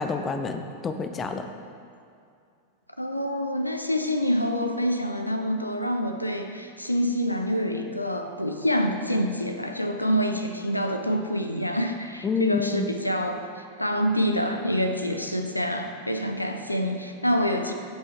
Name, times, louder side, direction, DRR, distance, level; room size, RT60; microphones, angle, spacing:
voice 1, 0.0-1.5 12.2-12.9, left 5 dB, 20° left, 7 dB, 0.5 m, -28 dB
voice 2, 3.0-17.7, equal, 85° left, 6 dB, 0.5 m, -26 dB
15.0 x 5.4 x 3.3 m, 2.4 s
figure-of-eight pair, 90°, 0 cm